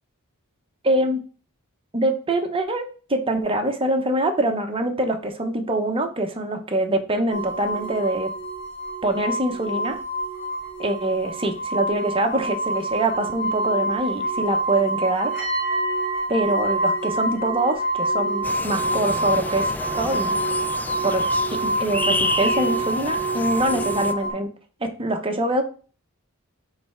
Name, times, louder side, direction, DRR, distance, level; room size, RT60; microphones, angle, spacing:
voice 1, 0.8-1.2 1.9-8.3 9.0-10.0 10.8-15.4 16.3-20.4 21.0-24.5 24.8-25.6, right 2 dB, 25° right, 5 dB, 0.9 m, -24 dB
sound 1, 7.3-24.3, right 1 dB, 40° left, 1.7 m, -26 dB
sound 2, 18.4-24.1, left 2 dB, 10° left, 0.4 m, -31 dB
6.8 x 3.3 x 4.4 m, 0.37 s
head